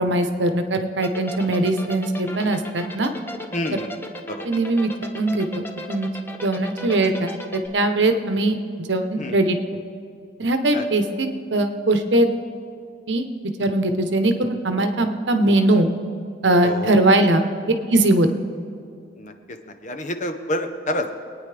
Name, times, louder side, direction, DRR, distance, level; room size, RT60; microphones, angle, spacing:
voice 1, 0.0-3.1 4.4-6.1 6.4-9.6 10.4-12.3 13.1-13.2 13.6-15.9 16.4-17.4 17.9-18.3, right 2 dB, 75° right, 7 dB, 1.0 m, -20 dB
sound 1, 1.0-7.7, equal, 10° left, 0.7 m, -35 dB
voice 2, 3.5-3.9 4.3-4.4 9.2-9.4 10.7-10.8 16.6-16.9 19.2-19.6 19.8-21.2, left 1 dB, 40° left, 6 dB, 0.8 m, -28 dB
23.5 x 9.3 x 3.4 m, 2.4 s
head